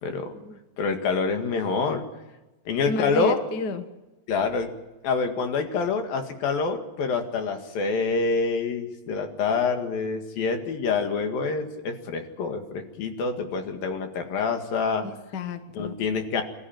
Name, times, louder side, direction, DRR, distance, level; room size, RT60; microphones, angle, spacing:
voice 1, 0.0-0.3 0.8-2.0 2.7-3.4 4.3-4.7 5.0-15.1 15.7-16.4, left 4 dB, 80° left, 5 dB, 3.8 m, -26 dB
voice 2, 2.9-3.8 15.0-15.9, left 3 dB, 50° left, 9 dB, 1.2 m, -31 dB
26.0 x 14.0 x 9.1 m, 1.0 s
omnidirectional pair, 4.0 m